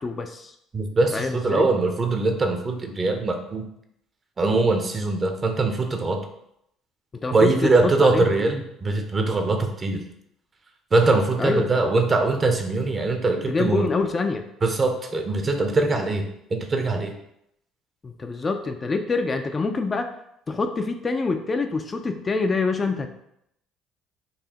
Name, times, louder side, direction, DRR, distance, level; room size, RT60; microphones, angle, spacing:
voice 1, 0.0-0.5 1.1-1.7 7.2-8.3 11.4-11.7 13.5-14.4 18.0-20.1 20.5-23.1, left 3 dB, 30° left, 6 dB, 0.3 m, -26 dB
voice 2, 0.7-3.6 4.4-6.2 7.3-10.0 10.9-13.9 14.6-17.1, right 3 dB, 35° right, 5 dB, 0.7 m, -22 dB
4.0 x 2.7 x 2.9 m, 0.77 s
hypercardioid pair, 70°, 0 cm